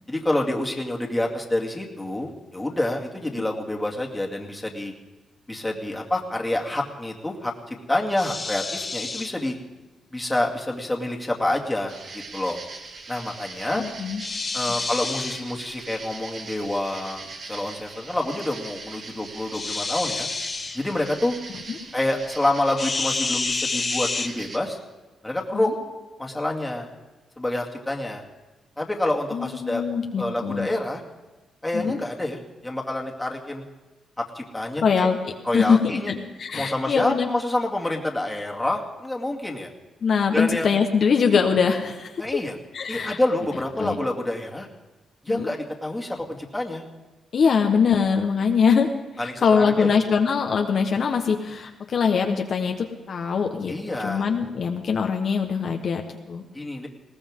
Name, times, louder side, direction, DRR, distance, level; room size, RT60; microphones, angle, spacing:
voice 1, 0.1-4.9 5.5-9.5 10.1-12.6 13.1-13.8 14.5-20.3 20.7-21.3 21.9-24.8 25.2-25.7 26.2-26.9 27.4-28.2 28.8-29.8 30.2-31.0 31.6-33.6 34.2-35.1 35.4-36.1 36.5-39.7 40.3-40.7 42.2-42.5 42.9-44.7 45.2-46.8 49.2-49.9 53.7-54.3 56.5-56.9, left 1 dB, 10° left, -1 dB, 2.3 m, -27 dB
sound 1, 8.2-9.3 14.2-15.4 19.5-20.8 22.8-24.3, left 3 dB, 30° left, 0.9 m, -28 dB
sound 2, 11.9-24.6, right 4 dB, 55° right, 2.0 m, -40 dB
voice 2, 13.8-14.2 21.7-21.8 25.5-25.7 29.3-30.7 31.7-32.0 34.8-35.2 35.5-35.8 36.1-37.3 40.0-42.2 42.7-43.2 43.8-44.0 45.3-45.5 47.3-56.4, left 6 dB, 55° left, 3 dB, 1.2 m, -23 dB
20.0 x 18.0 x 3.7 m, 1.2 s
cardioid pair, 110°, 0 cm